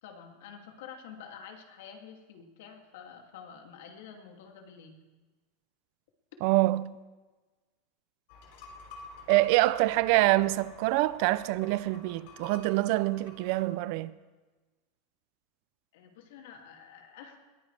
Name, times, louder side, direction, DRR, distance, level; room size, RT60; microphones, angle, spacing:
voice 1, 0.0-5.0 15.9-17.4, left 7 dB, 75° left, 2.5 m, -48 dB
voice 2, 6.4-7.0 9.3-14.1, right 18 dB, 55° right, 0.4 m, -25 dB
sound 1, 8.3-13.6, left 4 dB, 55° left, 3.1 m, -50 dB
21.0 x 15.0 x 3.4 m
supercardioid pair, 160°, 0 cm